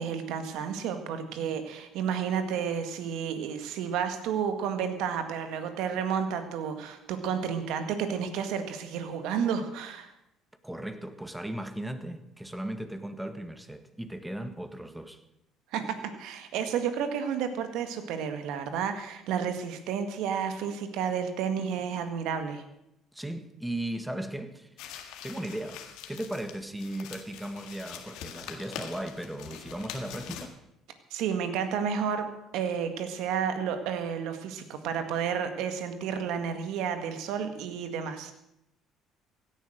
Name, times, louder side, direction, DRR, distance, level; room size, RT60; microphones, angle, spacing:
voice 1, 0.0-10.1 15.7-22.6 31.1-32.3 32.5-38.3, right 7 dB, 70° right, 1.9 m, -31 dB
voice 2, 10.6-15.2 23.1-24.7 25.2-30.5, right 1 dB, 5° right, 1.8 m, -37 dB
sound 1, 24.8-30.5, left 9 dB, 75° left, 1.7 m, -44 dB
16.5 x 11.0 x 6.5 m
hypercardioid pair, 60°, 0 cm